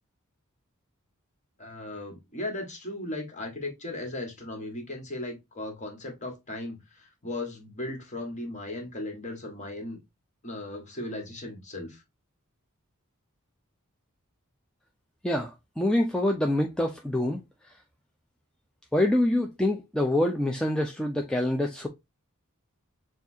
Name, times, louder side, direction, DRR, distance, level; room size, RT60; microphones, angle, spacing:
voice 1, 1.6-10.0 10.4-12.0, left 2 dB, 35° left, 1.6 m, -37 dB
voice 2, 15.2-17.4 18.9-21.9, left 1 dB, 5° left, 0.4 m, -26 dB
6.9 x 2.4 x 2.7 m
head